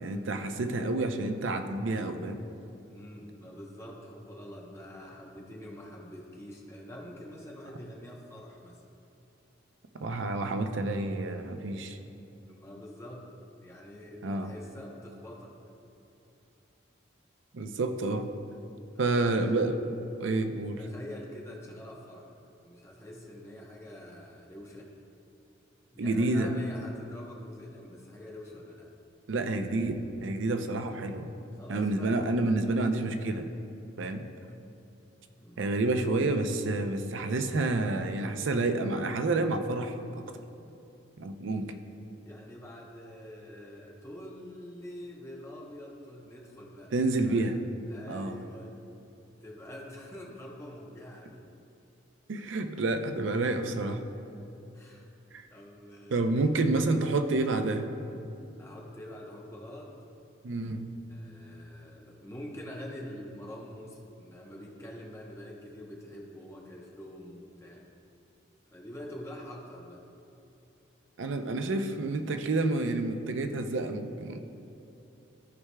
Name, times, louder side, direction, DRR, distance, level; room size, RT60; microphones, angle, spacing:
voice 1, 0.0-2.4 9.9-12.0 14.2-14.5 17.5-18.3 19.0-19.7 20.2-20.8 26.0-26.5 29.3-31.3 31.7-33.5 34.0-34.3 35.6-40.2 41.2-41.8 46.9-47.6 48.1-48.4 52.3-54.0 55.3-55.5 56.1-57.9 60.4-60.9 71.2-74.4, right 2 dB, 70° right, 7 dB, 0.5 m, -29 dB
voice 2, 2.9-8.8 12.4-13.2 13.6-15.5 18.9-19.8 20.8-22.3 22.6-24.9 25.9-28.9 31.5-32.9 35.3-35.6 42.2-46.9 47.2-47.6 47.9-48.7 49.4-51.5 54.7-55.1 55.5-56.6 58.6-59.9 61.1-67.8 68.7-70.0, left 1 dB, 15° left, -3 dB, 0.8 m, -45 dB
14.0 x 4.7 x 2.2 m, 2.9 s
head